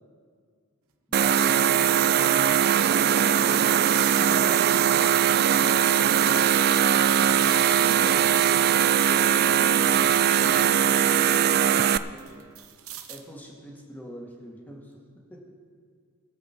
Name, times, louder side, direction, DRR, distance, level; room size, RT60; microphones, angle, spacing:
sound 1, 0.9-1.0 1.5-2.9 3.3-4.2 5.1-6.0 6.6-7.7 8.2-10.5 10.9-13.3 14.7-14.9, right 10 dB, 80° right, 1.0 m, -46 dB
voice 1, 1.1-3.7 4.2-7.1 7.7-8.3 9.1-12.5 13.1-15.0 15.3-15.5, equal, 10° left, -2 dB, 2.1 m, -44 dB
sound 2, 1.1-12.0, right 9 dB, 45° right, 0.4 m, -20 dB
21.0 x 7.8 x 4.6 m, 2.1 s
head